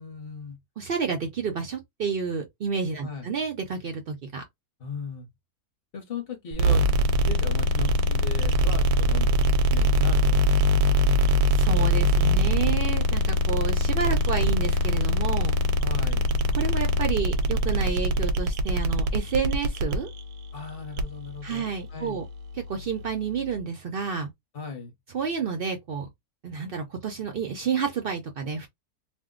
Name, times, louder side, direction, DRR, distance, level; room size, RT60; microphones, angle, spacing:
voice 1, 0.0-0.6 3.0-3.3 4.8-5.3 5.9-6.9 7.2-11.3 15.8-16.3 20.5-22.2 24.5-24.9, left 5 dB, 45° left, 0.8 m, -38 dB
voice 2, 0.8-4.4 11.5-15.6 16.5-20.1 21.4-22.2 22.7-24.3 25.1-26.1 26.4-28.7, right 6 dB, 65° right, 0.5 m, -30 dB
sound 1, 6.5-23.6, equal, 80° right, 1.1 m, -23 dB
2.6 x 2.1 x 3.6 m
omnidirectional pair, 1.6 m